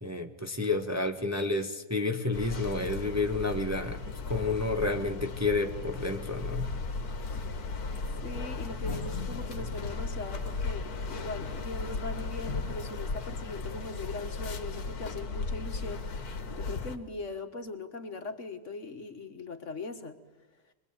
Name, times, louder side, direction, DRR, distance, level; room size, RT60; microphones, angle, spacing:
voice 1, 0.0-4.0 4.3-6.7, left 3 dB, 10° right, 4 dB, 1.3 m, -30 dB
sound 1, 2.3-17.0, left 3 dB, 80° left, 2.0 m, -36 dB
voice 2, 8.2-20.2, left 3 dB, 55° left, 7 dB, 1.8 m, -40 dB
25.0 x 21.5 x 8.9 m, 1.0 s
omnidirectional pair, 1.6 m